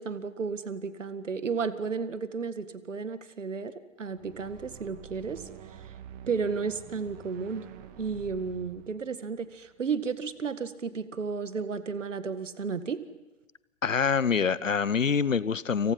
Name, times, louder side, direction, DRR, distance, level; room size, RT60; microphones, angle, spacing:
voice 1, 0.0-5.4 6.3-7.7 8.0-13.0, right 5 dB, 70° right, 12 dB, 2.0 m, -33 dB
sound 1, 4.1-10.4, right 9 dB, 30° right, 2.1 m, -48 dB
voice 2, 13.8-15.9, left 6 dB, 80° left, 20 dB, 1.0 m, -25 dB
29.5 x 28.0 x 5.8 m, 1.1 s
figure-of-eight pair, 115°, 39 cm